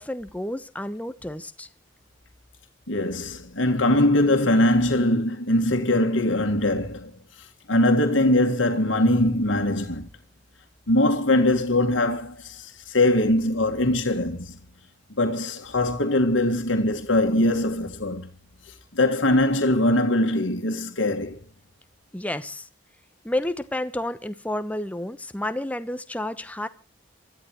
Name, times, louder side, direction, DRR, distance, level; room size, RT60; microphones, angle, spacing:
voice 1, 0.0-1.7 22.1-22.7 23.2-26.7, left 1 dB, 10° left, 1.0 m, -30 dB
voice 2, 2.9-7.1 7.7-10.1 10.9-14.6 15.2-18.3 18.9-21.4, left 1 dB, 85° left, 2.0 m, -22 dB
26.0 x 13.5 x 3.1 m
head